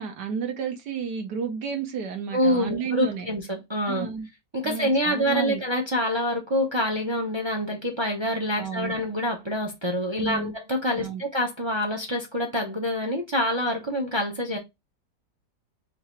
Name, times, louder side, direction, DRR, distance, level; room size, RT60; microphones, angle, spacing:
voice 1, 0.0-3.3 3.9-4.3 4.6-5.6 8.5-9.0 10.2-10.5 11.0-11.2, right 6 dB, 75° right, 1.5 m, -31 dB
voice 2, 2.3-4.1 4.5-14.6, left 1 dB, 30° right, 0.5 m, -26 dB
3.8 x 2.8 x 4.4 m
omnidirectional pair, 1.8 m